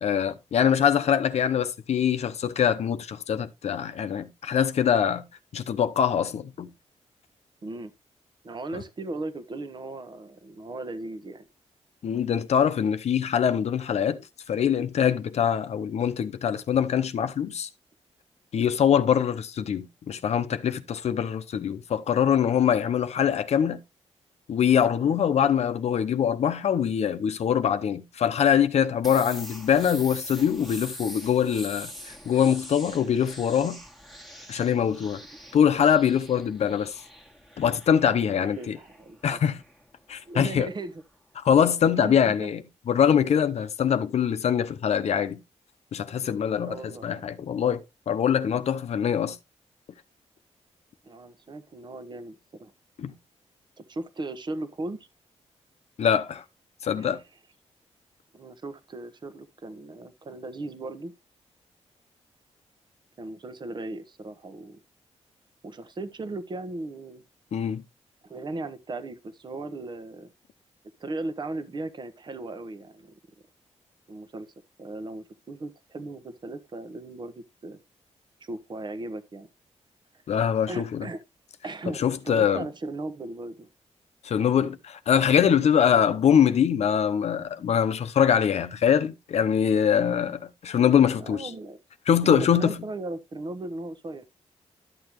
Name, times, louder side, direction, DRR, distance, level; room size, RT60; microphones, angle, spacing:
voice 1, 0.0-5.3 5.5-6.7 12.0-14.2 14.5-17.7 18.5-23.8 24.5-31.9 32.3-33.8 34.5-35.2 35.5-36.9 37.6-38.8 39.2-39.6 40.1-40.7 41.4-42.6 42.9-45.4 45.9-47.8 48.1-49.4 53.0-53.1 56.0-56.4 56.8-57.2 67.5-67.8 80.3-81.1 82.0-82.7 84.2-91.5 92.1-92.8, left 8 dB, 65° left, 0.8 m, -23 dB
voice 2, 7.6-7.9 8.4-11.5 25.0-25.2 38.2-39.4 40.3-40.9 41.9-42.5 46.6-47.0 51.0-52.7 53.8-55.1 57.0-57.2 58.3-61.1 63.2-64.8 65.6-67.2 68.2-70.3 71.0-73.1 74.1-74.5 74.8-77.8 78.4-79.5 80.7-81.2 81.6-83.7 91.1-91.8 92.2-94.2, right 2 dB, 40° right, 1.1 m, -37 dB
sound 1, 29.0-40.7, equal, ahead, 1.5 m, -44 dB
12.0 x 6.8 x 3.0 m
cardioid pair, 105°, 12 cm